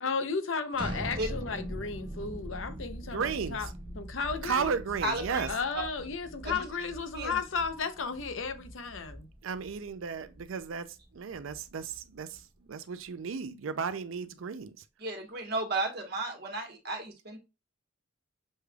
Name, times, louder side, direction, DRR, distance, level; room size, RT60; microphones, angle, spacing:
voice 1, 0.0-3.7 4.0-4.8 5.5-9.3, left 5 dB, 70° left, 0.7 m, -34 dB
sound 1, 0.7-12.6, equal, 25° right, 0.6 m, -42 dB
voice 2, 3.1-3.6 4.4-5.5 9.4-10.9 11.1-12.4 12.7-14.8, right 6 dB, 80° right, 0.5 m, -34 dB
voice 3, 5.0-5.5 5.7-5.8 6.4-6.6 7.1-7.4 15.0-17.4, right 2 dB, 55° right, 1.3 m, -33 dB
6.3 x 3.3 x 2.3 m
head